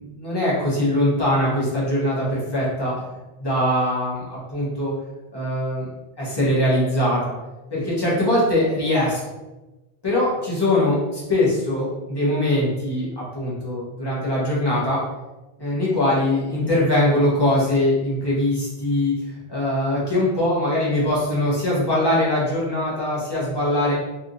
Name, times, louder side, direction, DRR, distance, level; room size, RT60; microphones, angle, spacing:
voice 1, 0.1-3.0 3.4-4.9 5.3-5.8 6.2-7.3 7.7-9.2 10.0-15.0 15.6-23.9, left 1 dB, 25° left, -7 dB, 1.0 m, -22 dB
3.3 x 2.8 x 2.6 m, 1.1 s
omnidirectional pair, 1.2 m